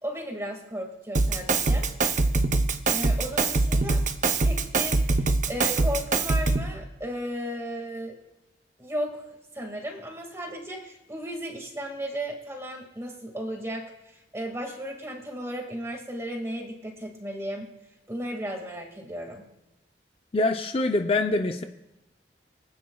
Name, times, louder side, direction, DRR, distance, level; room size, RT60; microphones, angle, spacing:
voice 1, 0.0-1.9 2.9-4.0 4.4-8.1 8.8-9.2 9.5-17.7 18.1-19.4, equal, 15° right, 2 dB, 1.9 m, -35 dB
Drum kit, 1.1-6.8, right 3 dB, 45° right, 0.7 m, -24 dB
voice 2, 20.3-21.6, left 2 dB, 35° left, 5 dB, 0.5 m, -24 dB
24.5 x 9.3 x 2.3 m, 0.96 s
head